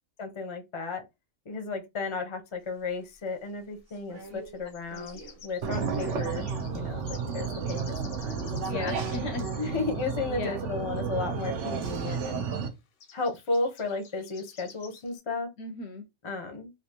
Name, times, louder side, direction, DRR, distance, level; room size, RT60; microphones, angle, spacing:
voice 1, 0.2-1.0 1.5-7.1 7.3-8.9 9.6-12.4 13.1-15.5 16.2-16.7, left 3 dB, 30° left, 0.6 m, -34 dB
sound 1, 2.6-2.7 4.5-9.7 11.4-11.5 11.7-11.8 12.0-12.2 12.5-12.7 13.0-15.2, left 7 dB, 85° left, 1.2 m, -51 dB
sound 2, 3.9-6.6 7.5-9.0 9.3-9.4, right 2 dB, 85° right, 1.4 m, -49 dB
sound 3, 5.6-12.7, right 5 dB, 65° right, 1.0 m, -32 dB
voice 2, 8.7-9.8 10.3-10.6 15.6-16.1, left 3 dB, 65° left, 0.8 m, -37 dB
3.3 x 2.6 x 2.8 m
omnidirectional pair, 1.4 m